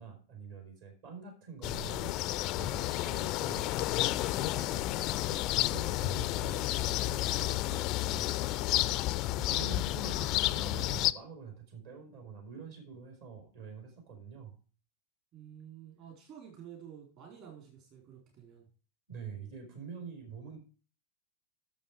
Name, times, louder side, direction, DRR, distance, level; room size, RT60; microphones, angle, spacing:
voice 1, 0.0-2.2 2.5-8.6 9.3-14.6 19.1-20.6, right 5 dB, 55° right, 3 dB, 4.3 m, -46 dB
sound 1, 1.6-11.1, left 17 dB, 40° left, 0.4 m, -31 dB
voice 2, 15.3-18.7, right 9 dB, 40° right, 1 dB, 4.1 m, -51 dB
10.5 x 7.1 x 4.7 m, 0.36 s
figure-of-eight pair, 90°, 0 cm